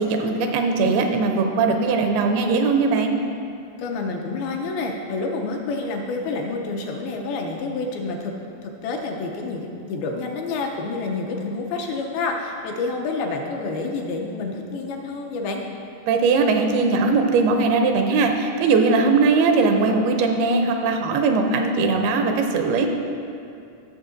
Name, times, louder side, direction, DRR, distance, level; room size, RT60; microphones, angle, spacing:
voice 1, 0.0-3.2 16.1-22.9, right 4 dB, 80° right, 4 dB, 2.5 m, -20 dB
voice 2, 3.8-8.3 8.6-15.6, left 3 dB, 85° left, 1 dB, 2.5 m, -28 dB
14.5 x 6.9 x 2.5 m, 2.5 s
omnidirectional pair, 4.5 m